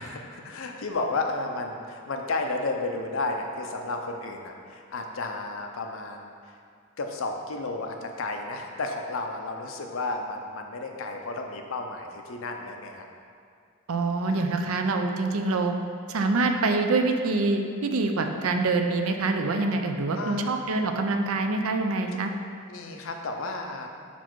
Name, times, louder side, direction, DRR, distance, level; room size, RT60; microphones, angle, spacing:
voice 1, 0.0-6.6 7.0-13.1 14.3-14.7 20.2-20.7 22.7-23.9, left 2 dB, 70° left, 3 dB, 0.6 m, -33 dB
voice 2, 13.9-15.7 16.1-22.3, right 3 dB, 90° right, 5 dB, 0.5 m, -25 dB
5.5 x 4.2 x 4.5 m, 2.3 s
head